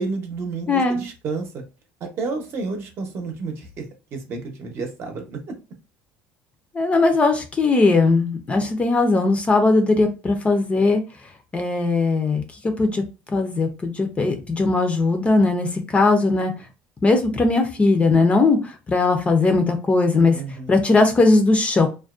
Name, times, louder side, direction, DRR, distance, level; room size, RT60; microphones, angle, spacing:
voice 1, 0.0-1.6 2.0-3.9 4.1-5.5 20.3-20.8, right 4 dB, 45° right, 3 dB, 0.7 m, -30 dB
voice 2, 0.7-1.0 6.7-11.0 11.5-12.4 12.8-16.5 17.0-20.4 20.7-21.9, left 3 dB, 20° left, 6 dB, 0.4 m, -19 dB
2.4 x 2.1 x 2.4 m, 0.32 s
cardioid pair, 125°, 6 cm